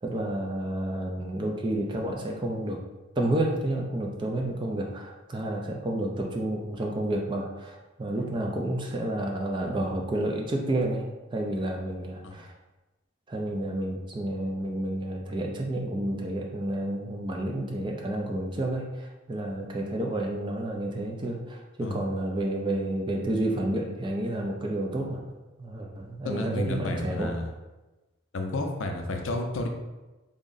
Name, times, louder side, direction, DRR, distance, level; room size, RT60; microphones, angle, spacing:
voice 1, 0.0-2.8 3.2-12.5 13.3-25.2 25.6-27.3, right 1 dB, 20° right, 0 dB, 0.3 m, -30 dB
voice 2, 21.8-22.1 26.2-27.5 28.3-29.7, left 2 dB, 65° left, 3 dB, 0.4 m, -31 dB
3.5 x 2.1 x 3.8 m, 1.1 s
head